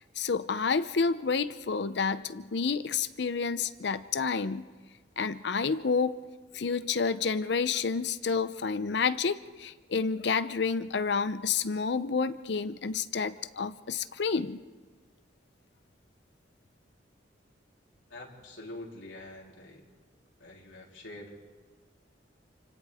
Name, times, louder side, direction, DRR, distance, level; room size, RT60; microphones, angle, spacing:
voice 1, 0.2-4.7 5.2-6.2 6.5-14.6, left 5 dB, 60° left, 14 dB, 0.6 m, -29 dB
voice 2, 18.1-19.8 20.4-21.4, left 1 dB, 80° left, -3 dB, 3.6 m, -45 dB
28.5 x 25.5 x 3.6 m, 1.4 s
head